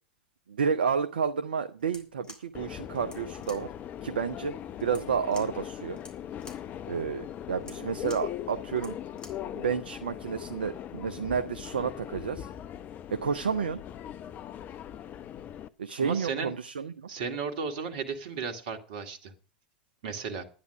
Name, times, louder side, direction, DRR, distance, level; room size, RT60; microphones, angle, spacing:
voice 1, 0.5-3.7 4.0-4.5 4.8-6.0 6.9-8.9 9.5-12.5 13.1-13.8 15.8-17.1, right 6 dB, 75° right, 10 dB, 0.7 m, -30 dB
sound 1, 1.8-9.5, left 2 dB, 15° left, 3.2 m, -52 dB
Subway metro underground, 2.5-15.7, left 10 dB, 30° left, 0.7 m, -40 dB
voice 2, 16.0-16.5 17.1-19.3 20.0-20.4, right 5 dB, 55° right, 6 dB, 2.0 m, -34 dB
11.5 x 9.5 x 5.9 m, 0.39 s
figure-of-eight pair, 95°, 5 cm